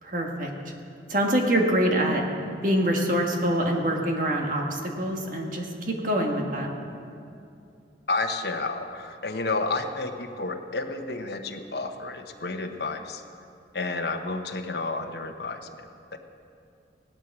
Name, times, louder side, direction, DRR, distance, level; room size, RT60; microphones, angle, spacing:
voice 1, 0.0-0.5 1.1-2.2 2.6-6.7, equal, 45° right, 1 dB, 1.7 m, -25 dB
voice 2, 8.1-13.2 13.7-16.2, left 3 dB, 65° left, 5 dB, 1.0 m, -31 dB
16.5 x 12.0 x 6.1 m, 2.5 s
head